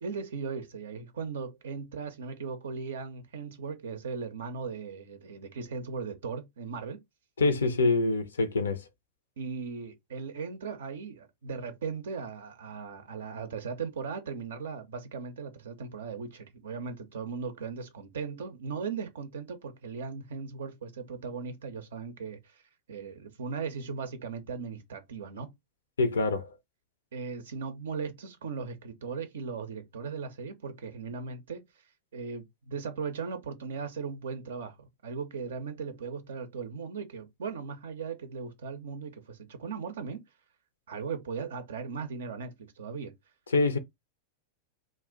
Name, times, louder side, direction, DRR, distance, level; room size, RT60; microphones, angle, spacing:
voice 1, 0.0-7.0 9.4-22.6 22.9-25.5 27.1-31.6 32.1-40.2 40.9-43.1, right 5 dB, 65° right, 0.4 m, -38 dB
voice 2, 7.4-8.8 26.0-26.5 43.5-43.8, left 3 dB, 70° left, 0.4 m, -25 dB
2.4 x 2.1 x 3.6 m
figure-of-eight pair, 90°, 0 cm